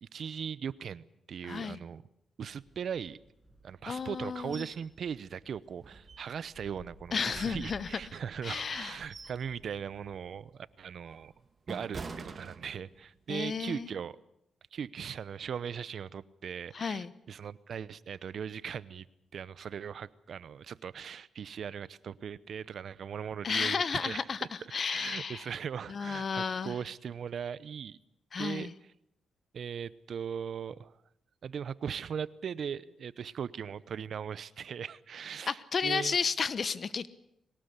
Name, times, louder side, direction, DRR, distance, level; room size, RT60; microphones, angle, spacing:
voice 1, 0.0-2.0 2.4-3.2 3.6-11.3 11.7-14.2 14.7-19.1 19.3-24.3 24.9-28.0 28.4-28.7 29.5-30.9 31.4-36.2, right 7 dB, 65° right, 18 dB, 0.8 m, -39 dB
voice 2, 1.4-1.8 3.8-4.7 7.1-7.9 8.4-9.0 13.3-13.9 16.7-17.1 23.4-25.4 25.9-26.7 28.3-28.7 35.5-37.1, left 5 dB, 50° left, 16 dB, 1.1 m, -33 dB
sound 1, 2.5-10.4, left 1 dB, 5° left, 7.6 m, -56 dB
sound 2, 4.5-4.8 5.2-5.3 5.8-6.6 7.1-8.1 8.7-9.5 9.9-10.1 10.7-13.1 13.5-13.7, right 4 dB, 40° right, 2.3 m, -46 dB
22.0 x 18.5 x 8.3 m, 0.79 s
cardioid pair, 85°, 0 cm